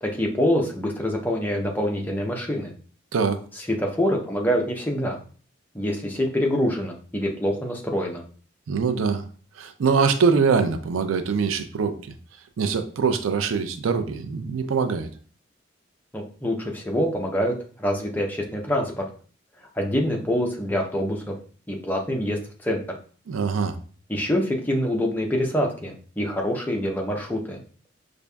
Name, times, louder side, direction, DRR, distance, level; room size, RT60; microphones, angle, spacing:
voice 1, 0.0-2.7 3.5-5.2 5.7-8.2 16.1-17.5 17.8-19.0 19.8-21.3 21.7-22.8 24.1-27.6, equal, 10° left, 0 dB, 0.5 m, -25 dB
voice 2, 8.7-9.2 9.6-12.1 12.6-15.1 23.3-23.8, right 5 dB, 90° right, 9 dB, 0.4 m, -23 dB
5.1 x 2.5 x 2.3 m, 0.42 s
head